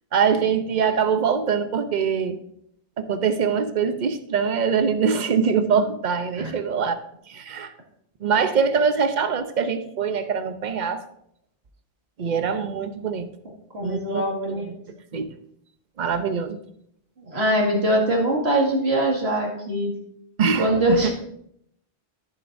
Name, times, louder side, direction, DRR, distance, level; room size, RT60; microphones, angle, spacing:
voice 1, 0.1-2.4 3.0-7.0 7.3-7.7 8.2-11.0 12.2-13.3 13.8-14.7 15.1-15.3 16.0-16.6 20.4-20.7 21.0-21.1, right 6 dB, 50° right, 9 dB, 0.8 m, -23 dB
voice 2, 13.7-14.6 17.3-19.9 20.6-21.1, right 1 dB, 80° right, -1 dB, 2.4 m, -22 dB
14.0 x 7.3 x 2.6 m, 0.71 s
omnidirectional pair, 1.1 m